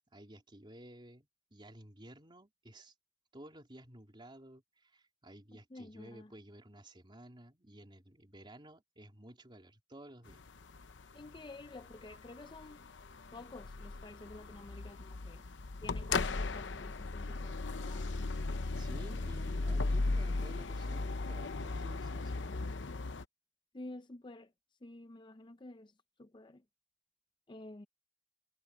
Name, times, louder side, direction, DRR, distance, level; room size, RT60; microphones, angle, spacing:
voice 1, 0.0-2.9 3.3-10.4 15.4-15.5 18.7-22.4, right 1 dB, 25° right, 3.4 m, -54 dB
voice 2, 5.7-6.3 11.1-12.8 13.3-15.4 15.8-18.1 23.7-24.5 24.8-25.9 26.2-26.6 27.5-27.9, left 2 dB, 25° left, 0.5 m, -50 dB
sound 1, 10.3-23.2, left 3 dB, 75° left, 0.8 m, -37 dB
head